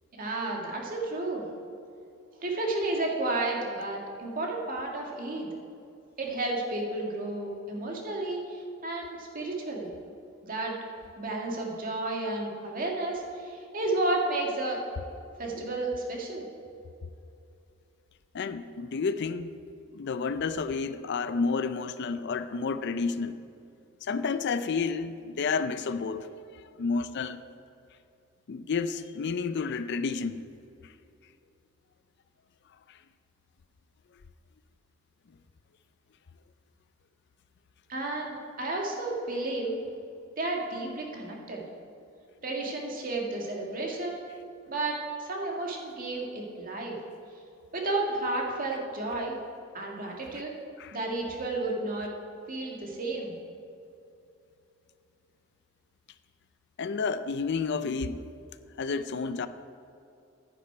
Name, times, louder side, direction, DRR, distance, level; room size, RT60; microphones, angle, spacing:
voice 1, 0.2-1.4 2.4-5.5 6.2-9.9 10.4-10.7 11.2-14.8 15.4-16.4 37.9-39.7 40.4-41.6 42.4-44.3 44.7-47.0 47.7-49.3 49.7-50.5 50.9-52.1 52.5-53.3, right 2 dB, 45° right, -1 dB, 1.9 m, -32 dB
voice 2, 18.3-19.5 19.9-23.4 24.0-26.3 26.8-27.4 28.5-30.4 32.9-33.0 50.8-51.0 56.8-58.3 58.8-59.5, left 4 dB, 55° left, 12 dB, 0.4 m, -30 dB
10.5 x 9.9 x 4.5 m, 2.7 s
head